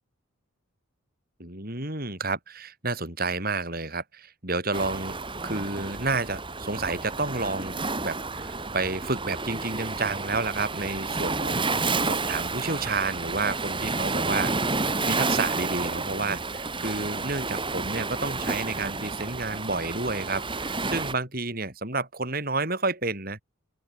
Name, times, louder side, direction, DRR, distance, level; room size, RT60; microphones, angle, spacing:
voice 1, 1.4-5.2 5.4-7.8 8.0-23.4, right 3 dB, 45° right, 5.7 m, -30 dB
Waves surf, 4.7-21.1, right 3 dB, 25° right, 4.4 m, -30 dB
open air
head